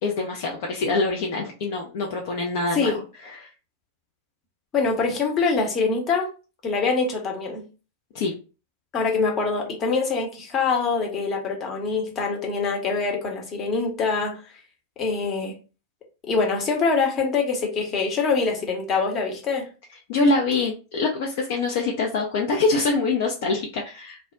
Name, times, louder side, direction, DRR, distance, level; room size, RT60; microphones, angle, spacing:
voice 1, 0.0-3.5 8.1-8.3 20.1-24.2, left 3 dB, 50° left, 0 dB, 0.5 m, -25 dB
voice 2, 4.7-6.3 6.6-7.7 8.9-14.4 15.0-15.5 16.3-19.7, left 4 dB, 30° left, 1 dB, 0.8 m, -24 dB
2.2 x 2.0 x 3.8 m, 0.33 s
figure-of-eight pair, 90°, 0 cm